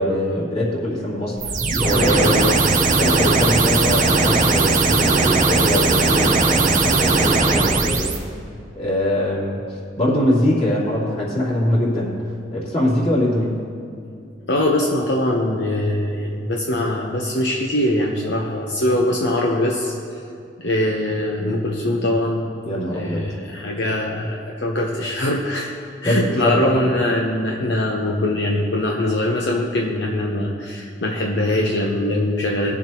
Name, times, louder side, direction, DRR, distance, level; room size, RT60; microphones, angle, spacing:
voice 1, 0.0-2.4 2.8-8.1 8.7-9.6 10.0-12.2 12.5-13.6 22.6-23.2 26.0-26.8, left 1 dB, 35° left, -6 dB, 3.1 m, -22 dB
sound 1, 1.4-8.2, right 3 dB, 45° right, 1.0 m, -18 dB
voice 2, 2.0-2.6 14.5-20.2 20.6-22.4 22.9-25.7 26.0-32.7, left 1 dB, 70° left, -1 dB, 0.9 m, -22 dB
20.5 x 7.3 x 3.0 m, 2.4 s
head